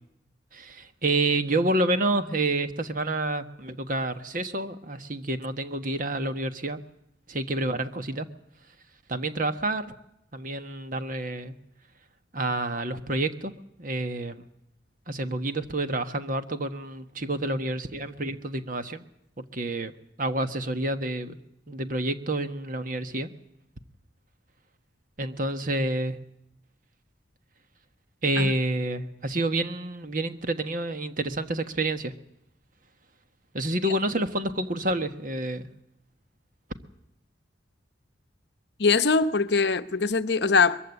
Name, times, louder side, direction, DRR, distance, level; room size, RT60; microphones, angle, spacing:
voice 1, 0.5-6.8 7.3-8.3 9.1-9.9 10.3-11.6 12.3-13.5 13.8-14.4 15.1-19.0 19.5-19.9 20.2-21.4 21.7-23.3 25.2-26.2 28.2-32.1 33.5-35.7, right 2 dB, 45° right, 1.4 m, -28 dB
voice 2, 38.8-40.8, left 4 dB, 60° left, 0.9 m, -22 dB
22.5 x 15.0 x 9.7 m
head